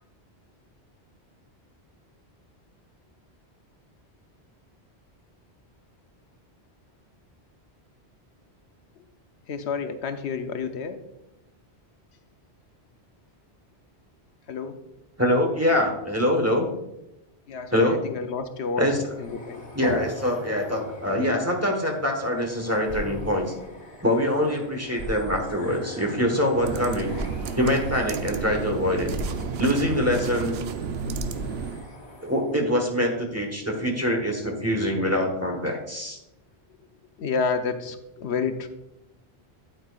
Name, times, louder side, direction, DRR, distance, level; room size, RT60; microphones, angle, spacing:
voice 1, 9.5-11.0 14.5-14.8 17.5-18.9 19.2-19.6 37.2-38.7, left 5 dB, 80° left, 8 dB, 1.0 m, -29 dB
voice 2, 15.2-16.7 17.7-18.0 18.8-19.0 19.7-23.5 24.0-27.1 27.5-29.1 29.6-30.6 32.2-36.2, left 1 dB, 15° right, 1 dB, 1.2 m, -24 dB
sound 1, 18.6-32.6, left 2 dB, 55° left, 1.6 m, -43 dB
sound 2, 22.9-23.3 24.6-24.7 25.0-25.4 27.1-27.5 29.1-29.5 31.1-31.5, equal, 50° right, 1.9 m, -35 dB
sound 3, 26.5-31.9, right 5 dB, 75° right, 0.8 m, -32 dB
9.2 x 8.6 x 2.4 m, 0.89 s
omnidirectional pair, 1.1 m